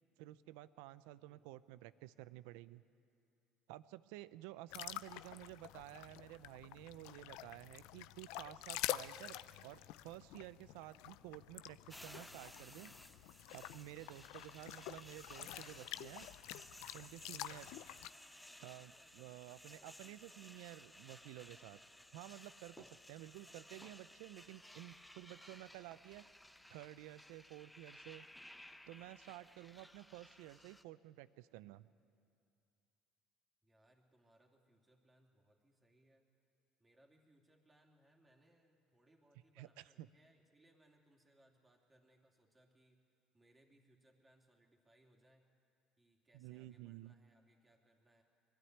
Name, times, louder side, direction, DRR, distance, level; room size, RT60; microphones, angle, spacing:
voice 1, 0.2-2.8 3.7-12.9 13.5-16.3 16.9-17.7 18.6-21.8 22.1-26.2 26.7-28.3 28.9-31.9 39.6-40.1 46.3-47.1, right 16 dB, 80° right, 16 dB, 0.5 m, -53 dB
sound 1, 4.7-18.1, left 16 dB, 75° left, 0.4 m, -48 dB
sound 2, 11.9-30.8, left 1 dB, 5° left, 0.8 m, -58 dB
voice 2, 18.7-20.2 33.6-36.3 36.8-45.5 46.0-48.2, right 1 dB, 20° right, 1 dB, 2.9 m, -71 dB
21.5 x 12.5 x 9.5 m, 2.4 s
supercardioid pair, 90°, 0 cm